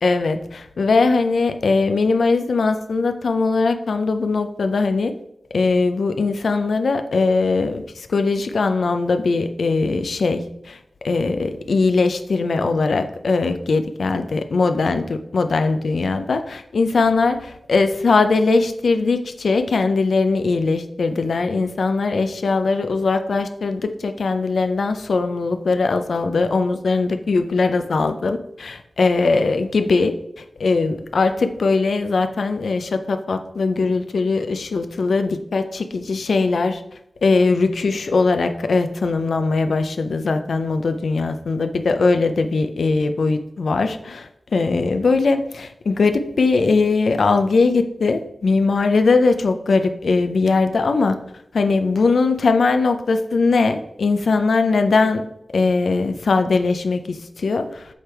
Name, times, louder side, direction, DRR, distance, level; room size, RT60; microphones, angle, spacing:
voice 1, 0.0-5.1 5.5-10.8 11.0-30.2 30.6-36.8 37.2-51.2 51.5-55.2 55.5-57.9, left 3 dB, 85° left, 8 dB, 0.4 m, -20 dB
6.3 x 3.5 x 4.3 m, 0.78 s
wide cardioid pair, 95°, 0 cm